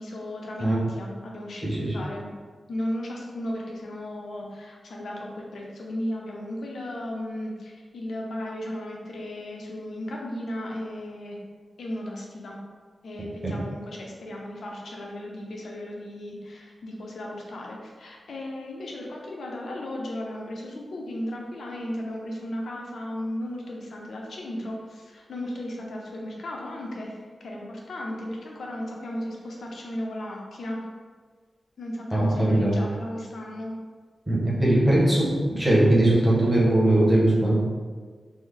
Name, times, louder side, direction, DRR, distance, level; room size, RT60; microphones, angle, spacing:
voice 1, 0.0-2.3 2.7-11.4 11.8-12.6 13.0-30.8 31.8-33.8 35.5-35.6, left 1 dB, 75° left, -1 dB, 0.6 m, -35 dB
voice 2, 1.6-2.0 13.4-13.5 32.1-32.7 34.3-37.6, right 1 dB, 15° right, -6 dB, 0.8 m, -20 dB
3.2 x 2.0 x 3.6 m, 1.5 s
wide cardioid pair, 155°, 0 cm